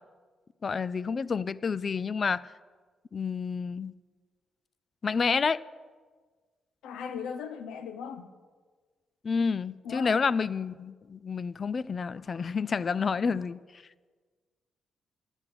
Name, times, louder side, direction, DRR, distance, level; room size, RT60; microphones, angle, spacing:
voice 1, 0.6-2.5 3.1-3.9 5.0-5.6 9.2-13.8, left 5 dB, 45° left, 0.5 m, -29 dB
voice 2, 6.8-8.3 9.8-10.2 13.2-13.4, left 7 dB, 80° left, 1.1 m, -38 dB
13.5 x 11.0 x 8.1 m
supercardioid pair, 60°, 0 cm